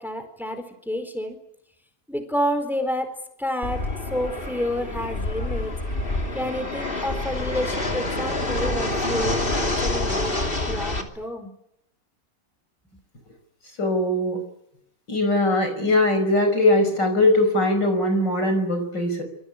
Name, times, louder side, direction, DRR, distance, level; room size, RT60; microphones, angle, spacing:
voice 1, 0.0-1.4 2.1-5.7 6.3-11.5, equal, ahead, 7 dB, 4.2 m, -29 dB
Fixed-wing aircraft airplane, 3.6-11.0, left 2 dB, 30° left, 3.1 m, -27 dB
voice 2, 13.8-14.4 15.1-19.2, left 1 dB, 65° left, 6 dB, 6.2 m, -21 dB
27.0 x 23.5 x 8.6 m, 0.75 s
omnidirectional pair, 2.0 m